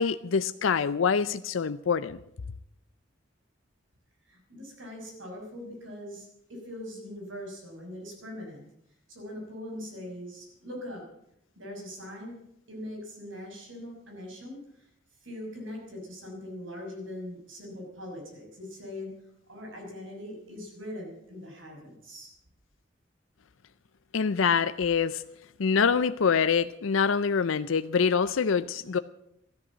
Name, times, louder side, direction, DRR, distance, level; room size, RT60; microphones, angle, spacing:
voice 1, 0.0-2.2 24.1-25.2 25.6-29.0, left 6 dB, 85° left, 12 dB, 0.5 m, -25 dB
voice 2, 4.3-8.7 9.1-11.1 11.6-12.4 12.7-14.9 15.2-19.1 19.5-22.3, left 1 dB, 80° right, 1 dB, 6.2 m, -41 dB
13.5 x 13.0 x 7.4 m, 0.78 s
head